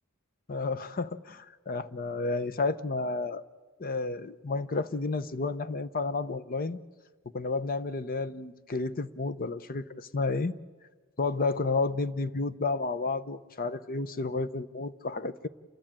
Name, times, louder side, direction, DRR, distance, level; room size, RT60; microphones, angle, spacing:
voice 1, 0.5-3.4 3.8-6.8 7.3-10.5 11.2-15.5, left 3 dB, 45° left, 13 dB, 0.7 m, -31 dB
29.0 x 13.5 x 8.8 m, 1.3 s
head